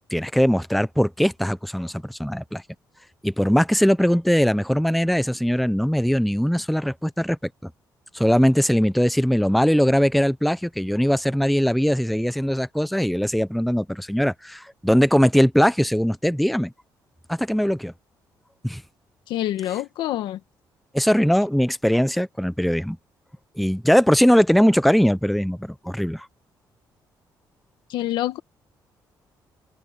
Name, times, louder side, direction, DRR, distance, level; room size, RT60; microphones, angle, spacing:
voice 1, 0.1-2.6 3.2-7.7 8.1-16.7 17.3-17.9 18.6-18.8 20.9-23.0 23.6-26.3, equal, ahead, 0.8 m, -20 dB
voice 2, 19.3-20.4 27.9-28.4, left 13 dB, 90° left, 1.5 m, -26 dB
cardioid pair, 110°, 8 cm